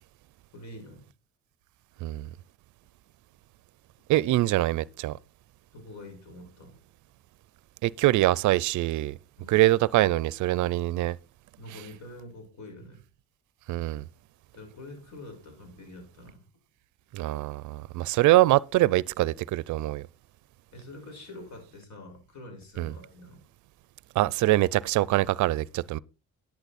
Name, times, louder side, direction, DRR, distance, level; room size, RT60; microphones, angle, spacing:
voice 1, 0.5-1.1 5.7-6.8 9.4-9.6 11.6-13.0 14.5-16.4 20.7-23.4, left 1 dB, 65° left, 5.4 m, -46 dB
voice 2, 4.1-5.2 7.8-9.2 9.5-11.2 13.7-14.0 17.1-20.1 22.8-22.9 24.2-26.0, right 17 dB, 75° right, 0.5 m, -24 dB
10.5 x 8.7 x 4.1 m
cardioid pair, 90°, 30 cm